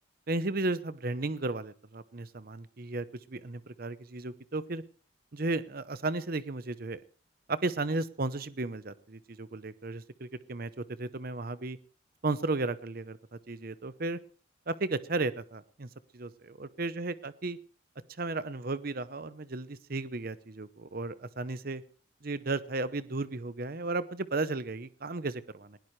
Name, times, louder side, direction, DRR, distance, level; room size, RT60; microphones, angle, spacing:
voice 1, 0.3-4.8 5.3-7.0 7.5-11.8 12.2-13.2 13.5-14.2 14.7-16.3 16.6-17.6 18.2-21.8 22.2-25.8, right 2 dB, 50° right, 14 dB, 0.8 m, -34 dB
20.0 x 17.0 x 3.2 m, 0.39 s
head